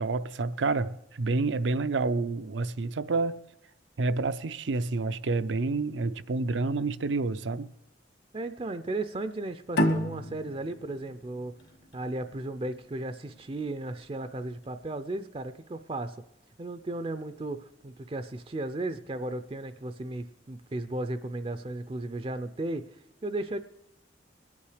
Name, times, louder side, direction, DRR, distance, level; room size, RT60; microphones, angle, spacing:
voice 1, 0.0-3.4 4.0-7.7, right 3 dB, 80° right, 0.6 m, -29 dB
voice 2, 8.3-11.6 11.9-16.2 16.6-22.9 23.2-23.6, right 2 dB, 30° right, 0.4 m, -35 dB
sound 1, 9.7-13.0, equal, 60° left, 1.5 m, -30 dB
22.0 x 8.6 x 4.9 m
head